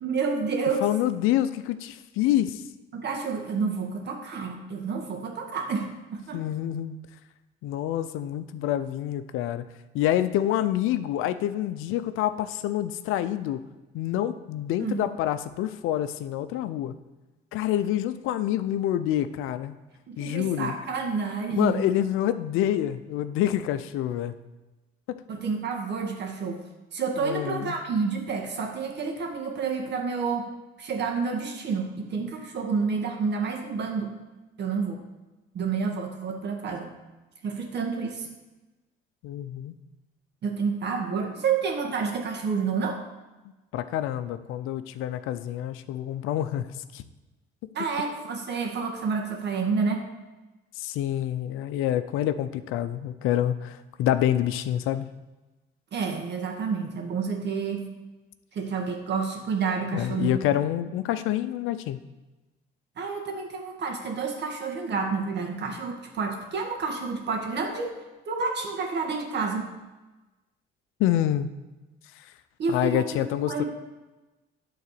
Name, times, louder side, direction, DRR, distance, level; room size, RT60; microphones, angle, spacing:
voice 1, 0.0-0.8 2.9-6.4 14.8-15.0 20.1-21.8 25.3-26.6 26.9-30.5 30.8-34.1 34.6-35.0 35.5-36.9 37.4-38.3 40.4-43.0 47.7-50.1 55.9-57.9 58.5-60.4 63.0-67.9 68.3-69.7 72.6-73.6, right 5 dB, 55° right, 2 dB, 1.9 m, -29 dB
voice 2, 0.8-2.6 6.3-7.0 7.6-9.6 9.9-13.6 13.9-16.9 17.5-19.7 20.2-20.7 21.5-24.3 25.1-25.2 27.2-27.8 39.2-39.7 43.7-46.7 46.9-47.0 50.8-55.1 59.9-62.0 71.0-71.5 72.2-72.3 72.7-73.6, left 12 dB, 75° left, 12 dB, 0.6 m, -27 dB
9.4 x 3.9 x 6.7 m, 1.1 s
supercardioid pair, 85°, 21 cm